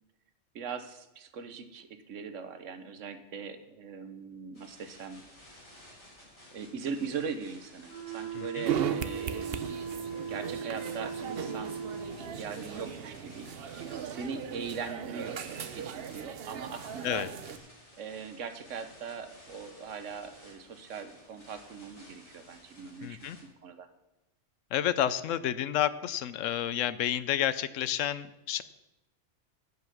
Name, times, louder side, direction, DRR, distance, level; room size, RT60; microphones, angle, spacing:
voice 1, 0.5-5.2 6.5-9.6 10.0-11.8 12.2-17.3 18.0-23.9, right 6 dB, 80° right, 9 dB, 1.3 m, -41 dB
sound 1, 4.5-23.4, left 1 dB, 25° left, 3.4 m, -55 dB
sound 2, 7.9-12.1, right 6 dB, 15° right, 4.7 m, -38 dB
voice 2, 8.3-8.7 17.0-17.3 23.0-23.4 24.7-28.6, left 11 dB, 85° left, 15 dB, 1.0 m, -30 dB
sound 3, 8.6-17.6, right 8 dB, 55° right, 0.8 m, -37 dB
15.5 x 5.5 x 5.9 m, 0.96 s
omnidirectional pair, 1.3 m